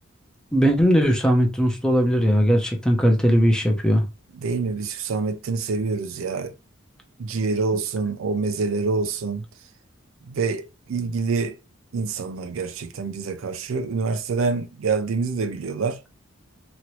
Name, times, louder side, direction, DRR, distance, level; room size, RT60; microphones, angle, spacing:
voice 1, 0.5-4.1, equal, 5° left, 0.6 m, -19 dB
voice 2, 4.3-6.5 7.2-9.4 10.2-11.6 11.9-16.0, right 4 dB, 75° right, 0.4 m, -26 dB
3.0 x 2.6 x 3.0 m
head